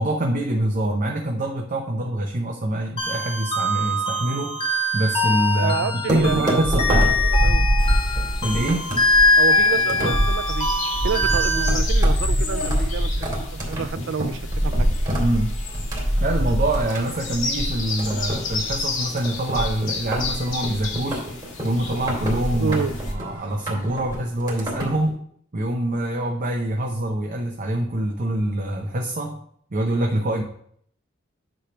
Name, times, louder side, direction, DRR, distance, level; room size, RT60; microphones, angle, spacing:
voice 1, 0.0-4.6 4.9-7.1 8.4-8.9 15.2-15.6 16.2-21.2 21.6-25.2 25.5-29.4 29.7-30.4, right 1 dB, 45° right, 2 dB, 0.8 m, -25 dB
sound 1, 3.0-11.7, left 2 dB, 30° left, 1.2 m, -22 dB
voice 2, 5.6-7.7 9.4-10.7 11.0-14.9 22.6-22.9, right 6 dB, 65° right, 15 dB, 0.4 m, -29 dB
sound 2, 6.1-25.1, equal, 20° right, 2.4 m, -24 dB
sound 3, 7.8-23.1, left 4 dB, 85° left, 1.8 m, -33 dB
8.8 x 3.3 x 6.0 m, 0.64 s
head